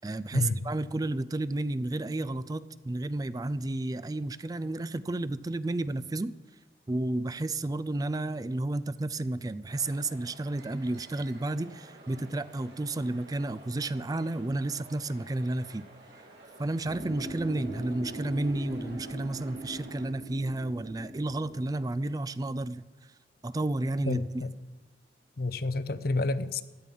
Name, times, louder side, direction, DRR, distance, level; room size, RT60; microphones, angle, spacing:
voice 1, 0.0-6.4 6.9-15.9 16.6-22.8 23.4-24.2, right 2 dB, 20° right, 16 dB, 0.4 m, -31 dB
sound 1, 9.7-20.1, right 2 dB, 70° right, 3.1 m, -52 dB
sound 2, 16.8-21.8, right 1 dB, 45° right, 3.8 m, -41 dB
voice 2, 24.1-24.5 25.4-26.6, left 2 dB, 60° left, 14 dB, 0.7 m, -29 dB
15.5 x 11.0 x 5.4 m, 1.2 s
head